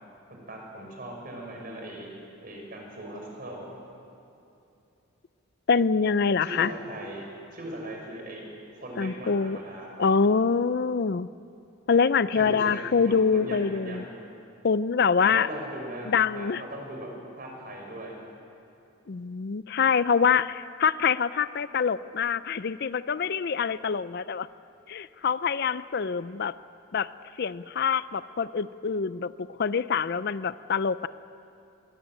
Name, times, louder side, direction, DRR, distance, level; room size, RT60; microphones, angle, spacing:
voice 1, 0.3-2.1 2.4-3.7 6.4-7.3 7.5-8.4 8.7-9.9 12.3-14.1 15.3-18.2, right 1 dB, 45° right, 0 dB, 6.0 m, -39 dB
voice 2, 5.7-6.7 9.0-9.6 10.0-11.3 11.9-14.0 14.6-15.5 16.1-16.6 19.1-24.5 24.9-26.5 26.9-27.1 27.4-29.3 29.6-31.1, left 5 dB, 55° left, 15 dB, 0.5 m, -25 dB
22.5 x 19.5 x 9.0 m, 2.8 s
head